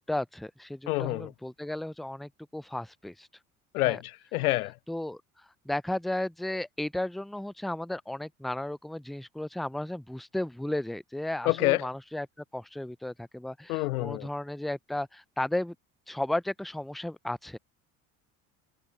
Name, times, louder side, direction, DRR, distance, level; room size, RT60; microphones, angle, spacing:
voice 1, 0.0-3.3 3.8-4.0 4.9-5.2 5.7-12.3 12.5-15.7 16.1-17.6, left 1 dB, ahead, 0.7 m, -34 dB
voice 2, 0.9-1.3 3.7-4.7 11.5-11.9 13.7-14.3, left 19 dB, 75° left, 0.5 m, -27 dB
hypercardioid pair, 65°, 44 cm